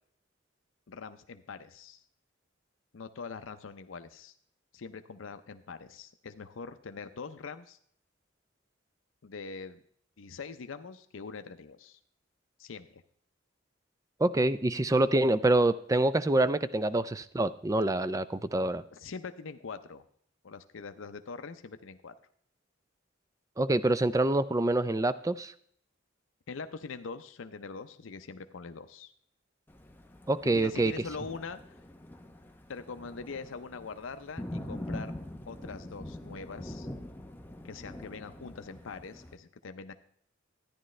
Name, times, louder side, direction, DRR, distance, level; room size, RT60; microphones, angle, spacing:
voice 1, 0.9-2.0 2.9-4.3 4.7-7.8 9.2-9.8 10.2-12.0 12.6-13.0 18.9-20.0 20.4-22.1 26.5-29.1 30.4-31.8 32.7-35.1 35.5-36.9 37.6-39.9, left 4 dB, 85° left, 9 dB, 0.6 m, -43 dB
voice 2, 14.2-18.8 23.6-25.5 30.3-30.9, right 2 dB, 15° right, 14 dB, 0.4 m, -26 dB
Thunder, 29.7-39.4, left 1 dB, 10° left, 0.7 m, -44 dB
13.5 x 10.0 x 3.2 m, 0.62 s
head